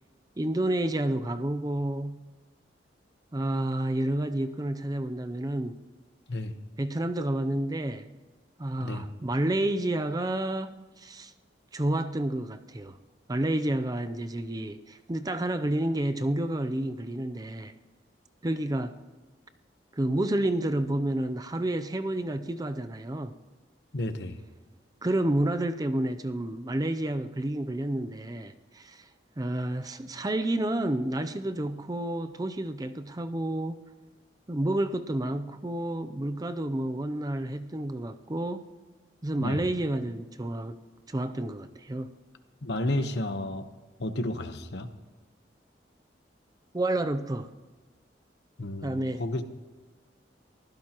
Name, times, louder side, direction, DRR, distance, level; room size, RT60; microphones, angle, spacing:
voice 1, 0.4-2.3 3.3-5.8 6.8-8.1 8.6-11.3 11.7-13.0 13.3-17.7 18.4-19.0 19.9-23.4 25.0-29.0 29.4-33.8 34.5-38.6 39.2-40.8 41.1-42.1 46.7-47.5 48.8-49.2, right 1 dB, 20° right, 0.5 m, -30 dB
voice 2, 23.9-24.4 39.4-39.6 42.6-43.7 44.0-44.9 48.6-49.4, left 1 dB, 70° left, 1.1 m, -31 dB
23.5 x 15.5 x 3.0 m
head